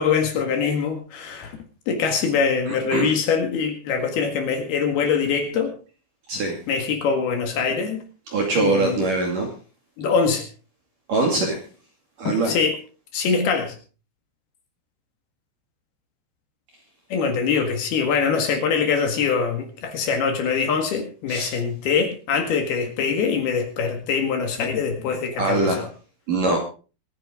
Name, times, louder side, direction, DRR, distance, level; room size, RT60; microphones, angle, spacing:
voice 1, 0.0-1.6 1.9-5.7 6.7-8.0 8.6-9.1 10.0-10.5 12.5-12.8 13.1-13.7 17.1-25.9, left 6 dB, 60° left, 5 dB, 3.3 m, -23 dB
voice 2, 2.7-3.1 6.3-6.6 8.3-9.5 11.1-11.6 12.2-12.5 21.3-21.5 25.4-25.8 26.3-26.6, right 3 dB, 50° right, 1 dB, 3.3 m, -22 dB
24.0 x 9.8 x 3.7 m, 0.35 s
omnidirectional pair, 6.0 m